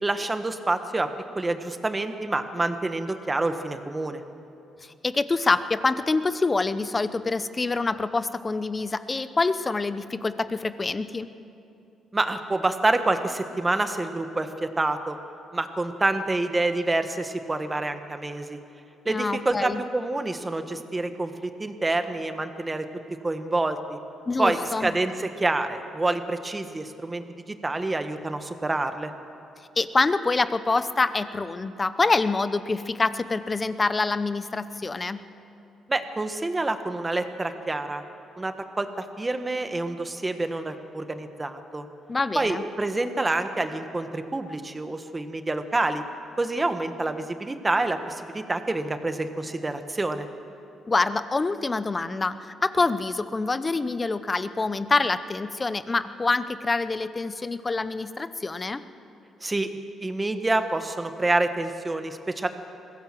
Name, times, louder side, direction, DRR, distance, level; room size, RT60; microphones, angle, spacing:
voice 1, 0.0-1.1 1.3-4.2 12.1-15.2 15.5-18.6 19.0-22.9 23.2-24.0 24.4-29.1 35.9-38.0 38.4-41.9 42.3-46.0 46.4-50.3 59.4-59.7 60.0-62.5, right 2 dB, 20° right, 8 dB, 1.4 m, -27 dB
voice 2, 5.0-11.3 19.1-19.8 24.3-24.9 29.8-35.2 42.1-42.6 50.9-58.8, left 3 dB, 25° left, 13 dB, 0.8 m, -26 dB
21.5 x 16.0 x 7.6 m, 2.8 s
cardioid pair, 90°, 0 cm